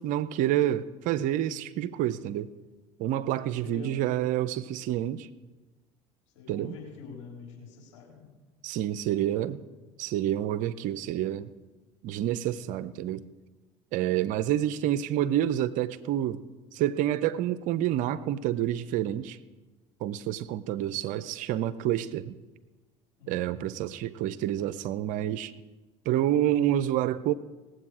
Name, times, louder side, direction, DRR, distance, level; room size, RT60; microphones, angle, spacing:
voice 1, 0.0-2.5 3.0-5.3 6.5-6.8 8.6-9.6 10.0-11.5 12.0-13.3 13.9-16.4 16.7-19.4 20.0-22.4 23.3-25.5 26.1-27.3, right 12 dB, 60° right, 16 dB, 0.6 m, -28 dB
voice 2, 3.6-4.4 6.3-8.3 23.2-23.5, left 5 dB, 75° left, -2 dB, 3.9 m, -46 dB
19.5 x 7.9 x 4.8 m, 1.2 s
hypercardioid pair, 70°, 15 cm